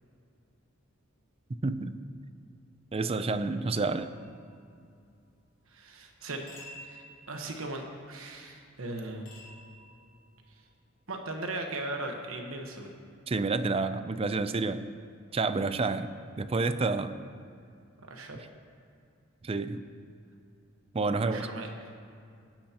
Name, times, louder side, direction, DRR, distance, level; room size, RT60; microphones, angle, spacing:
voice 1, 1.5-2.0 2.9-4.1 13.3-14.8 15.3-16.1 16.4-17.1 19.4-19.8 20.9-21.5, right 3 dB, 30° right, 11 dB, 0.4 m, -29 dB
sound 1, 3.8-5.0 6.5-7.9 9.3-10.6, equal, 45° left, 3.4 m, -52 dB
voice 2, 5.7-6.4 6.8-9.3 10.5-10.6 11.1-12.9 18.1-18.4 21.1-21.7, right 2 dB, 75° right, 3 dB, 1.3 m, -38 dB
18.0 x 10.5 x 3.0 m, 2.4 s
head